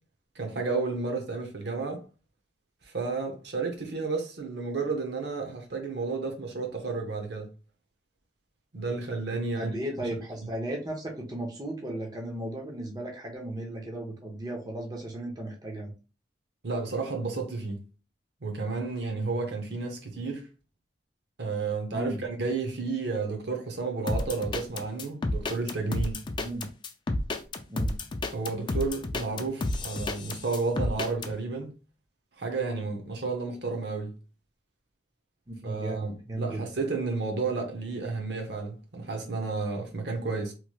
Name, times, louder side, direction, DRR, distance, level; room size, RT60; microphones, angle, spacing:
voice 1, 0.3-2.0 2.8-7.5 8.7-9.7 16.6-17.8 18.4-20.5 21.4-26.3 28.3-31.7 32.4-34.2 35.6-40.5, right 4 dB, 60° right, 0.7 m, -32 dB
voice 2, 9.6-15.9 21.9-22.2 26.4-26.7 27.7-28.0 35.5-36.6, right 1 dB, 20° right, 0.7 m, -35 dB
sound 1, 24.1-31.3, left 2 dB, 25° left, 0.3 m, -30 dB
3.0 x 3.0 x 2.2 m
head